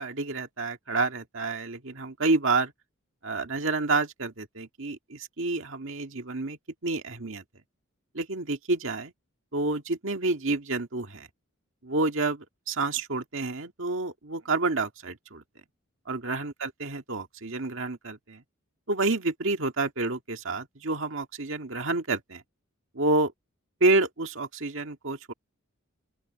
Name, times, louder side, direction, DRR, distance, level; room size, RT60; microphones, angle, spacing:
voice 1, 0.0-2.7 3.2-7.4 8.1-9.1 9.5-11.3 11.8-15.4 16.1-18.4 18.9-22.4 22.9-23.3 23.8-25.3, right 3 dB, 65° right, 1.9 m, -29 dB
open air
head